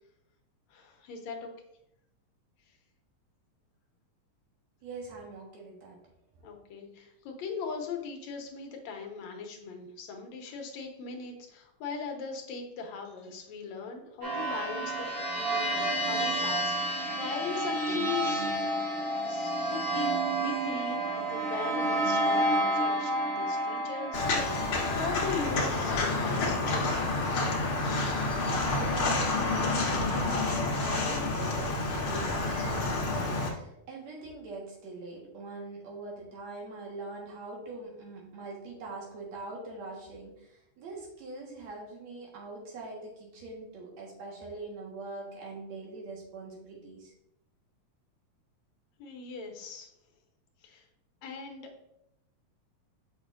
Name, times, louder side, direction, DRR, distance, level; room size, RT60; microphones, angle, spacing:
voice 1, 0.7-1.5 6.4-15.1 15.3-18.5 19.3-26.9 49.0-49.9 50.6-50.8 51.2-51.7, left 5 dB, 75° left, 2 dB, 2.1 m, -39 dB
voice 2, 4.8-6.0 28.3-47.1, right 3 dB, 70° right, -2 dB, 2.5 m, -42 dB
sound 1, 14.2-27.4, right 1 dB, 50° right, 2.1 m, -31 dB
Walk footsteps, 24.1-33.5, left 3 dB, 55° left, 1.7 m, -29 dB
6.5 x 6.3 x 2.4 m, 0.78 s
omnidirectional pair, 3.4 m